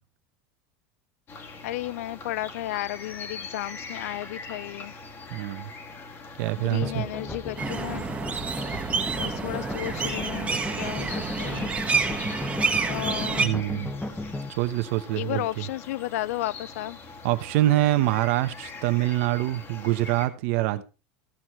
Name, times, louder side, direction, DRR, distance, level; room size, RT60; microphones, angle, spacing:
sound 1, 1.3-20.3, left 4 dB, 30° left, 1.7 m, -42 dB
voice 1, 1.6-4.9 6.6-8.1 9.2-11.7 12.9-13.6 15.2-17.0, left 15 dB, 85° left, 0.4 m, -33 dB
voice 2, 5.3-5.7 6.4-7.0 13.4-13.9 14.6-15.7 17.2-20.8, right 16 dB, 70° right, 1.0 m, -25 dB
sound 2, 6.8-14.5, left 2 dB, 10° left, 1.0 m, -35 dB
sound 3, 7.6-13.5, right 5 dB, 20° right, 1.4 m, -28 dB
15.0 x 6.3 x 4.4 m
supercardioid pair, 135°, 8 cm